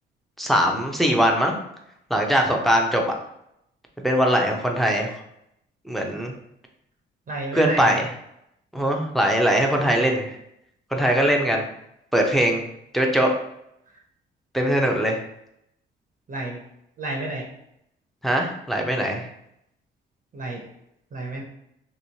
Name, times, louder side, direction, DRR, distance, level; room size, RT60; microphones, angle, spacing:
voice 1, 0.4-1.6 2.1-3.1 4.0-5.1 5.9-6.3 7.5-8.1 8.7-10.4 10.9-11.7 12.1-12.6 12.9-13.3 14.5-15.2 18.2-19.3, equal, ahead, 1 dB, 0.6 m, -21 dB
voice 2, 7.3-8.0 16.3-16.6 17.0-17.4 20.3-20.6 21.1-21.4, right 2 dB, 45° right, 0 dB, 0.7 m, -30 dB
3.0 x 2.9 x 2.7 m, 0.78 s
cardioid pair, 90°, 20 cm